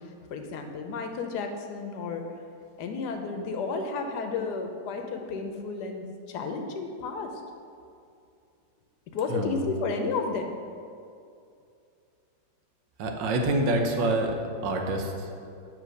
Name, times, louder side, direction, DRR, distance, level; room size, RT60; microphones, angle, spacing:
voice 1, 0.3-2.2 2.8-7.3 9.1-10.5, left 4 dB, 75° left, 4 dB, 1.1 m, -32 dB
voice 2, 9.3-9.6 13.0-14.4 14.6-15.3, right 2 dB, 85° right, 3 dB, 1.4 m, -26 dB
7.4 x 3.2 x 6.2 m, 2.5 s
omnidirectional pair, 1.9 m